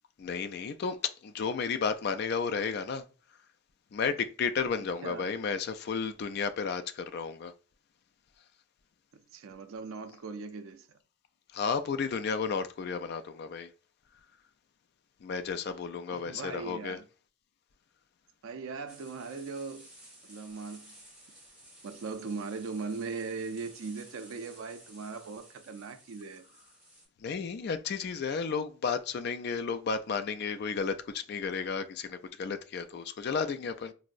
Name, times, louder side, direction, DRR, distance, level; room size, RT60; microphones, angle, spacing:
voice 1, 0.2-3.0 3.9-7.5 11.5-13.7 15.2-17.0 27.2-33.9, left 5 dB, 50° left, 0.3 m, -33 dB
voice 2, 5.0-5.4 9.1-10.9 16.1-17.1 18.4-19.9 20.2-20.9 21.8-26.5, right 4 dB, 80° right, 0.4 m, -39 dB
sound 1, 18.9-27.1, right 1 dB, 5° right, 1.6 m, -55 dB
4.4 x 2.0 x 2.4 m
head